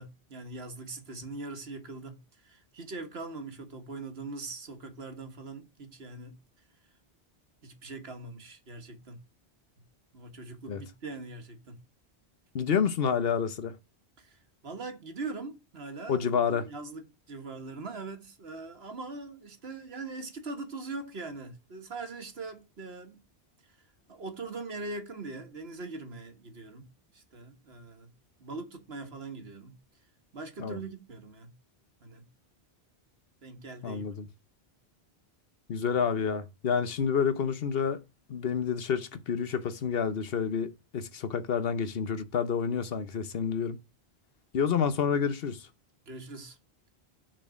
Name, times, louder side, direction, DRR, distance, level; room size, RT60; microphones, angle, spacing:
voice 1, 0.0-6.4 7.6-9.2 10.1-11.8 14.2-14.3 14.6-16.2 16.5-23.2 24.1-26.9 27.1-28.1 28.4-29.8 30.3-31.5 32.0-32.3 33.4-34.0 46.1-46.6, right 3 dB, 70° right, 1.7 m, -41 dB
voice 2, 12.5-13.7 16.1-16.7 30.6-30.8 33.8-34.3 35.7-38.0 38.3-43.8 44.5-45.7, left 7 dB, 65° left, 1.0 m, -29 dB
6.2 x 4.3 x 6.2 m
omnidirectional pair, 1.1 m